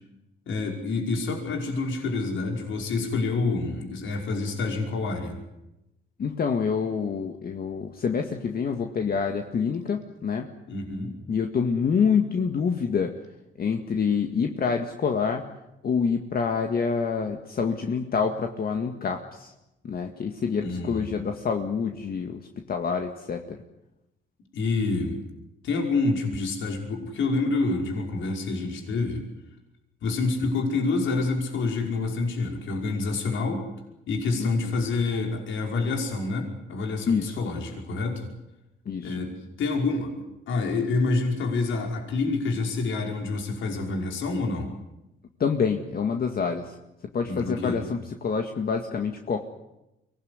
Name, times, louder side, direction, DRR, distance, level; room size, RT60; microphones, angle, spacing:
voice 1, 0.5-5.4 10.7-11.1 20.6-21.2 24.5-25.2 25.6-29.3 30.0-33.7 34.1-38.3 39.0-40.2 40.5-44.7 47.3-47.8, left 3 dB, 75° left, 2 dB, 5.5 m, -27 dB
voice 2, 6.2-10.5 11.3-13.1 13.6-15.5 15.8-19.5 19.8-23.6 34.4-34.7 37.1-37.4 38.9-39.2 45.4-46.8 47.1-49.5, left 6 dB, 50° left, 4 dB, 2.0 m, -27 dB
24.0 x 19.0 x 9.7 m, 0.92 s
cardioid pair, 90°, 20 cm